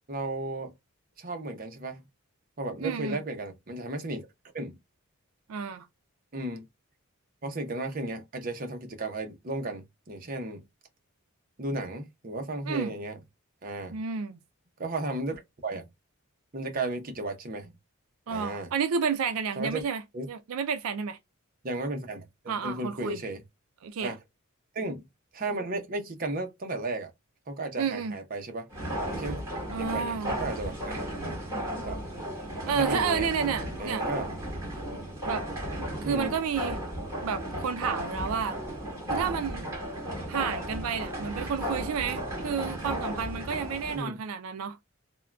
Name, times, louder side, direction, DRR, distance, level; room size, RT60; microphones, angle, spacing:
voice 1, 0.1-0.7 1.2-2.0 2.6-4.3 4.5-4.8 6.3-6.7 7.4-10.6 11.6-13.2 13.6-14.0 14.8-15.9 16.5-17.7 18.3-18.7 19.6-19.8 20.1-20.3 21.6-23.4 24.0-24.2 24.7-25.1 25.3-27.1 27.5-28.7 29.1-29.4 29.8-31.1 31.8-32.0 32.6-33.3 33.8-34.3 36.0-36.3 43.9-44.2, right 2 dB, 40° right, 0.7 m, -34 dB
voice 2, 2.8-3.2 5.5-5.9 12.7-12.9 13.9-14.4 18.3-20.0 20.3-21.2 22.5-23.2 23.8-24.1 27.8-28.1 29.7-30.3 32.7-34.0 34.9-35.0 35.3-35.5 36.0-36.8 37.2-38.6 39.1-39.7 40.3-44.8, right 6 dB, 85° right, 0.4 m, -31 dB
sound 1, 28.7-44.0, equal, 15° right, 1.7 m, -34 dB
3.5 x 2.2 x 2.3 m
head